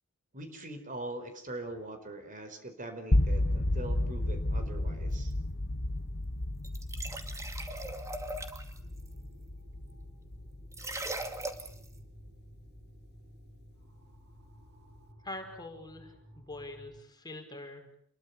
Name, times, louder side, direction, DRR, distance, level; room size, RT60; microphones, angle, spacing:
voice 1, 0.3-5.3, right 2 dB, 40° right, 7 dB, 4.8 m, -42 dB
sound 1, 3.1-13.1, left 1 dB, 50° left, 1.3 m, -33 dB
sound 2, 6.6-8.8 10.7-11.9, right 2 dB, 15° right, 2.3 m, -39 dB
sound 3, 8.7-17.0, equal, 60° right, 6.0 m, -56 dB
voice 2, 15.2-18.0, left 2 dB, 20° left, 4 dB, 5.3 m, -44 dB
29.0 x 22.5 x 7.1 m, 0.63 s
head